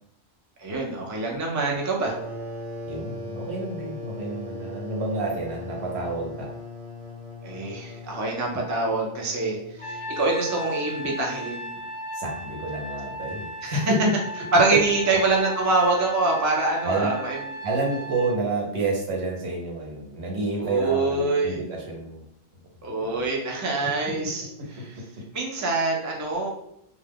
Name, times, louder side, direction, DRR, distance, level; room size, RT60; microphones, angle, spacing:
voice 1, 0.6-2.1 7.4-11.7 13.6-13.9 14.5-17.4 20.6-21.6 22.8-24.4 24.7-25.0 25.3-26.5, right 3 dB, 25° right, -1 dB, 0.4 m, -25 dB
sound 1, 2.1-10.4, left 2 dB, 55° right, 1.2 m, -39 dB
voice 2, 2.9-6.5 12.1-14.0 14.7-14.8 15.1-15.2 16.8-17.2 17.6-22.2 23.0-23.2 24.2-25.0, right 3 dB, 80° right, 0 dB, 1.0 m, -29 dB
Trumpet, 9.8-18.4, left 1 dB, 60° left, 0.7 m, -36 dB
2.3 x 2.1 x 3.4 m, 0.76 s
omnidirectional pair, 1.1 m